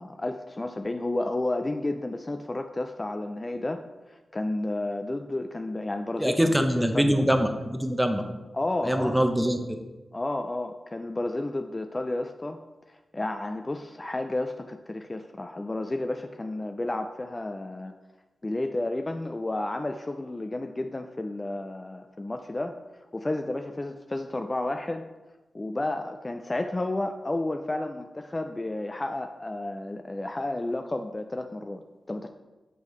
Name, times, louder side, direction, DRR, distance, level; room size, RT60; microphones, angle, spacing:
voice 1, 0.0-7.2 8.5-9.2 10.1-12.6 12.9-17.9 18.4-22.8 23.1-25.0 25.5-32.3, left 2 dB, 25° left, 6 dB, 0.3 m, -32 dB
voice 2, 6.2-8.2 8.8-9.6, equal, 5° right, 5 dB, 0.7 m, -23 dB
6.4 x 5.2 x 3.1 m, 1.2 s
cardioid pair, 65°, 0 cm